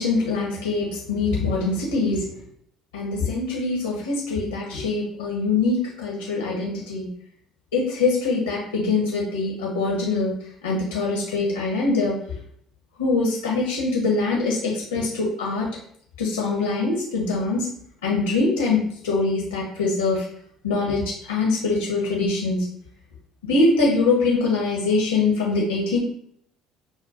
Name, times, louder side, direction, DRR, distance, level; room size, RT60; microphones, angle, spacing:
voice 1, 0.0-2.4 2.9-7.1 7.7-10.3 10.6-12.1 13.0-15.7 16.2-17.7 18.0-20.2 20.6-22.7 23.4-26.0, left 3 dB, 90° left, -2 dB, 0.8 m, -23 dB
6.3 x 2.2 x 2.4 m, 0.65 s
hypercardioid pair, 60°, 0 cm